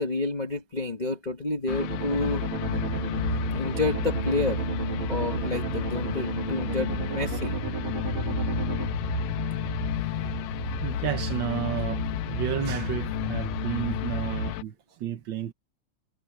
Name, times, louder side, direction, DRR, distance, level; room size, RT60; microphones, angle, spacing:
voice 1, 0.0-2.4 3.5-4.6 5.1-7.5, left 3 dB, 65° left, 0.4 m, -29 dB
sound 1, 1.7-14.6, left 17 dB, 85° left, 1.4 m, -32 dB
sound 2, 1.8-8.9, right 11 dB, 50° right, 1.9 m, -35 dB
sound 3, 2.6-14.5, right 3 dB, 90° right, 8.5 m, -34 dB
voice 2, 10.8-15.5, right 10 dB, 70° right, 1.1 m, -32 dB
omnidirectional pair, 3.5 m